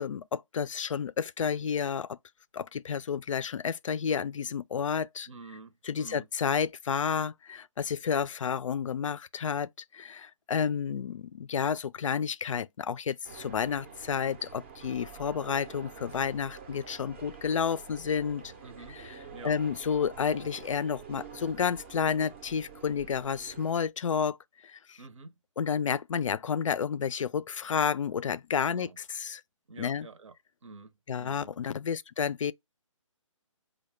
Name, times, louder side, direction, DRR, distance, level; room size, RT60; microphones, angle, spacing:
voice 1, 0.0-2.2 2.5-5.3 5.8-18.4 18.9-19.2 19.4-24.4 24.6-25.0 25.6-29.4 29.8-30.1 31.1-32.5, left 7 dB, 70° left, 0.4 m, -31 dB
voice 2, 5.3-6.3 18.6-19.0 19.3-19.6 25.0-25.3 28.7-29.0 29.7-30.3 30.6-30.9 31.2-31.5, right 3 dB, 65° right, 0.7 m, -48 dB
sound 1, 13.2-23.7, right 5 dB, 20° right, 0.5 m, -47 dB
4.4 x 2.2 x 3.1 m
hypercardioid pair, 160°, 17 cm